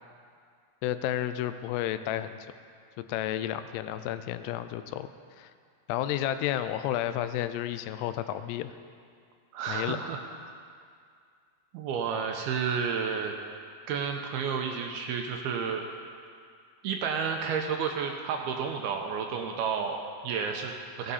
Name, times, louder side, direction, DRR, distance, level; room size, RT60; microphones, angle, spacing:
voice 1, 0.8-2.4 3.1-5.1 5.4-5.5 5.9-8.7 9.7-10.0, left 12 dB, 85° left, 11 dB, 2.6 m, -31 dB
voice 2, 9.5-10.2 11.7-13.3 13.9-15.8 16.8-21.1, right 6 dB, 80° right, 3 dB, 2.4 m, -31 dB
16.5 x 11.5 x 4.2 m, 2.2 s
omnidirectional pair, 4.9 m